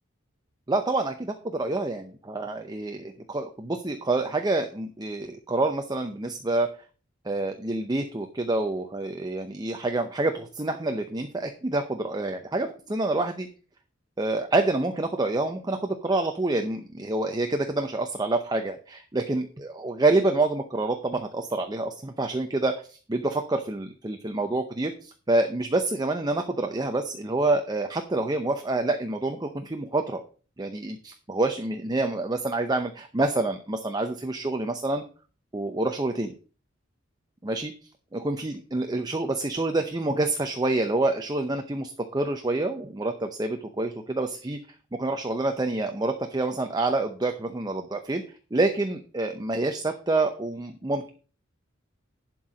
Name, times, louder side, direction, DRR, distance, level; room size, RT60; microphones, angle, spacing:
voice 1, 0.7-6.7 7.2-13.5 14.2-30.2 30.6-35.0 35.5-36.3 37.4-37.7 38.1-44.6 44.9-48.2 48.5-51.1, right 2 dB, 20° right, 6 dB, 0.7 m, -27 dB
11.0 x 4.6 x 5.3 m, 0.38 s
head